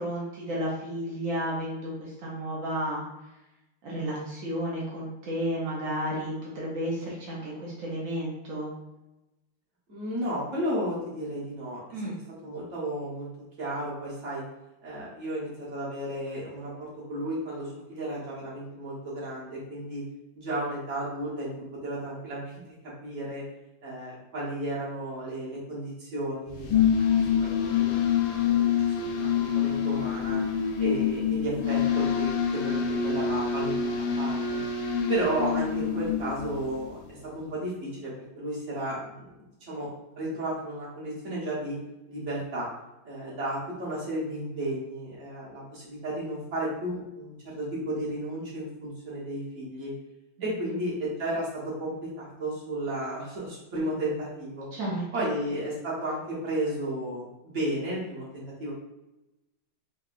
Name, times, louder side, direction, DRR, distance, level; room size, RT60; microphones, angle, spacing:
voice 1, 0.0-3.0 3.8-8.7 11.9-12.2 50.4-50.8 54.7-55.3, equal, 75° right, -5 dB, 0.7 m, -32 dB
voice 2, 9.9-11.8 12.4-13.3 13.6-14.4 14.8-20.0 20.3-21.5 21.8-22.5 23.0-23.4 23.8-26.7 27.0-27.1 27.4-27.9 28.3-28.5 29.1-30.4 30.8-34.6 35.1-39.9 40.2-41.8 42.1-42.7 43.0-49.9 50.4-54.7 55.1-58.7, right 1 dB, 45° right, -6 dB, 1.1 m, -33 dB
sound 1, 26.5-36.9, left 7 dB, 75° left, 1.1 m, -26 dB
4.5 x 2.2 x 2.4 m, 0.96 s
omnidirectional pair, 2.4 m